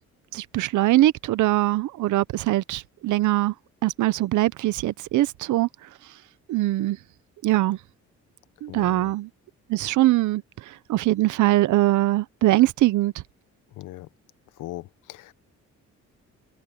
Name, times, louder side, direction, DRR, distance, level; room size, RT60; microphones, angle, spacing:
voice 1, 0.3-3.5 3.8-5.9 6.5-7.0 7.4-7.8 8.6-9.3 9.7-13.2, right 16 dB, 75° right, 0.8 m, -22 dB
voice 2, 8.7-9.1 13.7-14.1 14.5-15.3, left 16 dB, 90° left, 1.0 m, -39 dB
cardioid pair, 90°, 30 cm